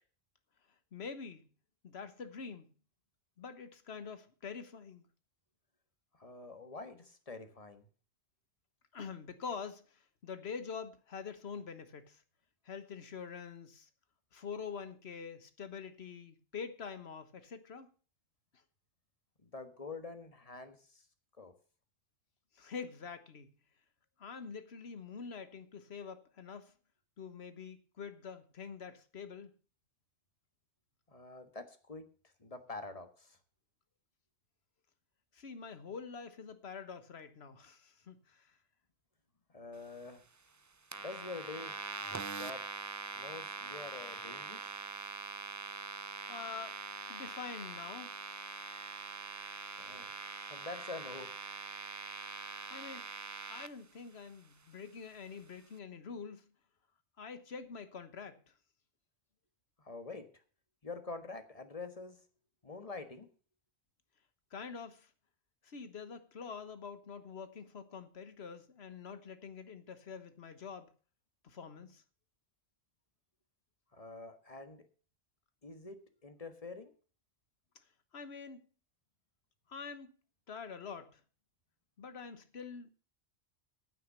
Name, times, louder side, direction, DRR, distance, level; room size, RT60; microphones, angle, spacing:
voice 1, 0.9-1.5 1.8-2.7 3.4-5.0 8.9-12.2 12.6-13.9 14.3-17.9 22.5-23.5 24.2-26.7 27.2-29.5 35.3-38.6 46.3-46.8 47.1-48.1 52.7-53.1 53.5-56.4 57.2-58.4 64.5-65.1 65.6-70.9 71.4-72.0 78.1-78.6 79.7-80.1 80.5-81.2 82.0-82.9, left 6 dB, 75° left, 1.5 m, -46 dB
voice 2, 6.1-7.9 19.4-21.0 21.4-21.5 31.1-32.1 32.4-33.4 39.5-40.2 41.0-41.8 42.3-42.6 43.1-44.8 49.8-50.1 50.5-51.3 59.8-60.4 60.8-62.2 62.6-63.3 73.9-74.9 75.6-76.9, left 3 dB, 35° left, 1.5 m, -46 dB
sound 1, 40.9-53.7, right 4 dB, 30° right, 0.3 m, -43 dB
9.2 x 9.2 x 6.7 m
omnidirectional pair, 1.1 m